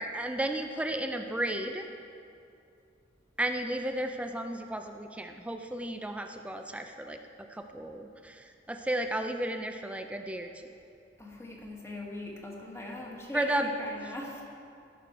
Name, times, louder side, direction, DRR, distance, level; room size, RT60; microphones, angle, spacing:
voice 1, 0.0-1.9 3.4-7.2 7.5-10.7 13.3-13.7, right 1 dB, 5° right, 5 dB, 0.4 m, -33 dB
voice 2, 11.2-14.4, left 1 dB, 15° left, -1 dB, 1.4 m, -41 dB
16.0 x 6.2 x 4.5 m, 2.6 s
head